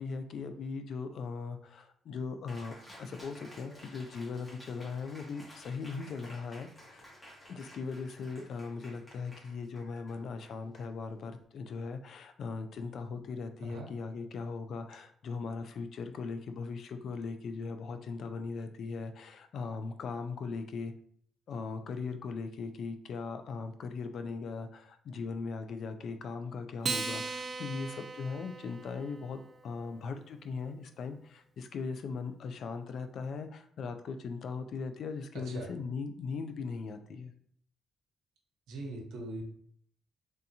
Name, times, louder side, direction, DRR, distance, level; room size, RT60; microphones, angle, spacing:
voice 1, 0.0-2.7 3.0-7.0 7.5-20.9 21.5-37.3, left 4 dB, 65° left, 8 dB, 0.4 m, -39 dB
Cheering, 2.5-11.4, equal, 20° left, 1.3 m, -54 dB
Acoustic guitar, 26.8-29.5, right 4 dB, 40° right, 0.4 m, -38 dB
voice 2, 35.3-35.7 38.7-39.4, right 2 dB, 85° right, 2 dB, 0.8 m, -41 dB
3.4 x 2.7 x 2.7 m, 0.62 s
cardioid pair, 90°, 0 cm